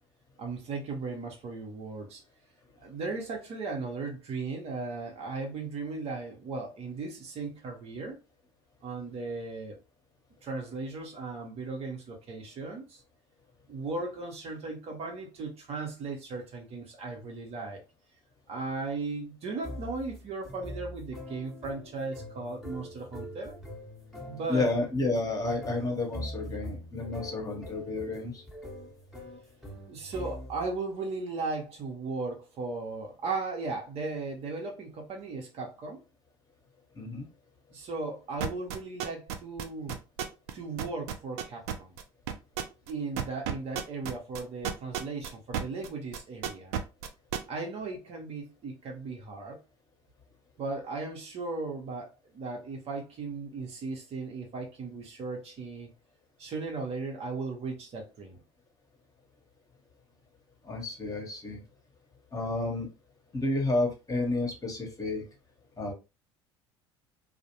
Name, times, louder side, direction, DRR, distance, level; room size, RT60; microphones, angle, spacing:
voice 1, 0.4-2.2 2.8-8.2 8.8-9.8 10.4-13.0 13.7-17.8 18.5-23.6 24.3-24.7 29.9-36.0 37.7-40.0 40.5-42.0 42.9-46.8 47.5-49.6 50.6-55.9 56.4-58.4, right 3 dB, 45° right, 0.9 m, -37 dB
sound 1, 19.6-30.8, equal, ahead, 1.0 m, -43 dB
voice 2, 24.5-28.4 37.0-37.3 60.6-61.6 62.3-62.9 63.3-65.3 65.8-65.9, left 2 dB, 25° left, 1.0 m, -31 dB
sound 2, 38.4-40.5 40.8-45.9 46.1-47.4, right 9 dB, 75° right, 0.4 m, -32 dB
2.4 x 2.1 x 2.8 m
hypercardioid pair, 70°, 14 cm